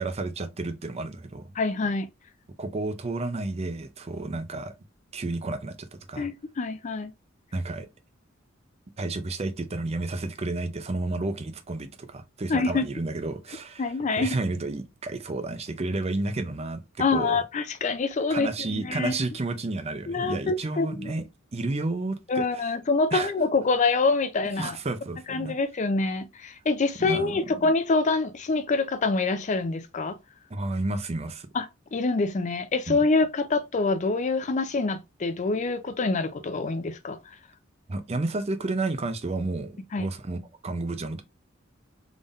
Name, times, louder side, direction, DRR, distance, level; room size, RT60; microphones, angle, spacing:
voice 1, 0.0-1.5 2.6-4.7 5.1-6.3 7.5-7.9 9.0-16.8 17.1-17.4 18.3-21.2 21.5-22.7 23.1-23.3 24.6-25.5 27.0-27.7 30.5-31.5 32.9-33.0 37.9-41.2, right 2 dB, 30° right, 0.5 m, -31 dB
voice 2, 1.6-2.1 6.2-7.1 12.5-12.8 13.8-14.3 17.0-19.1 20.1-21.2 22.3-24.8 25.3-30.2 31.5-37.2 39.9-40.1, left 3 dB, 40° left, 0.4 m, -26 dB
3.6 x 3.5 x 2.5 m
head